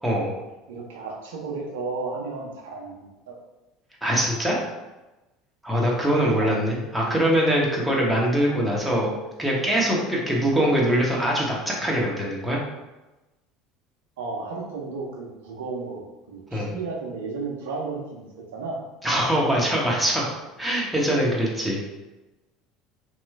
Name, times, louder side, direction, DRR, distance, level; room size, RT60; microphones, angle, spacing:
voice 1, 0.7-3.4 6.3-6.6 14.2-18.3 18.5-18.8, right 3 dB, 70° right, -1 dB, 0.6 m, -33 dB
voice 2, 4.0-4.6 5.6-9.1 9.4-12.6 16.5-16.7 19.0-20.3 20.6-21.8, equal, 5° right, -4 dB, 1.0 m, -23 dB
3.0 x 2.3 x 3.3 m, 1.0 s
figure-of-eight pair, 70°, 0 cm